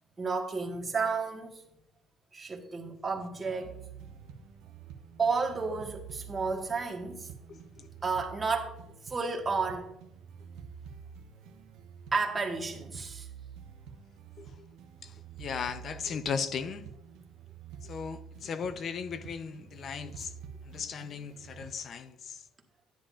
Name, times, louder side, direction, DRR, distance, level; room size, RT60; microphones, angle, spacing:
voice 1, 0.2-1.5 2.3-3.8 5.2-7.3 8.0-8.8 9.0-9.9 12.1-13.3, right 4 dB, 25° right, 1.6 m, -31 dB
sound 1, 3.6-21.8, right 7 dB, 85° right, 0.8 m, -48 dB
voice 2, 7.5-7.9 14.4-14.7 15.0-16.9 17.8-20.3 20.6-22.4, left 6 dB, 50° left, 0.7 m, -37 dB
10.0 x 10.0 x 2.5 m
cardioid pair, 100°, 0 cm